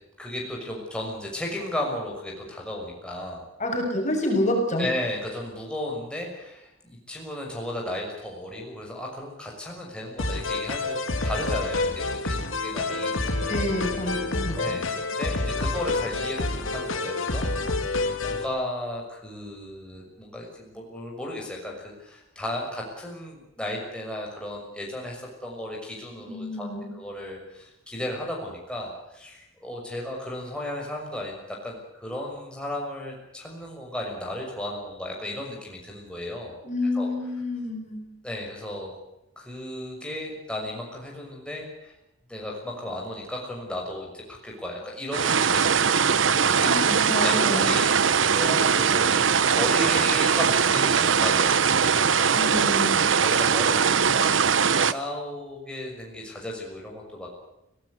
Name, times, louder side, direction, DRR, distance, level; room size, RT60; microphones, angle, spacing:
voice 1, 0.2-3.4 4.8-13.9 14.6-17.4 17.8-26.7 26.9-36.5 36.9-37.1 38.2-38.9 39.4-41.9 42.3-46.7 47.2-47.9 48.3-52.5 52.9-54.3 54.8-57.5, left 1 dB, 5° left, -2 dB, 6.3 m, -35 dB
voice 2, 3.6-4.9 13.5-14.8 26.2-26.9 36.6-38.0 46.6-47.8 52.3-53.1, left 1 dB, 35° left, 2 dB, 6.5 m, -28 dB
sound 1, 10.2-18.5, left 2 dB, 85° left, 2.9 m, -28 dB
sound 2, 45.1-54.9, right 6 dB, 70° right, 0.9 m, -21 dB
24.5 x 18.5 x 8.1 m, 0.89 s
head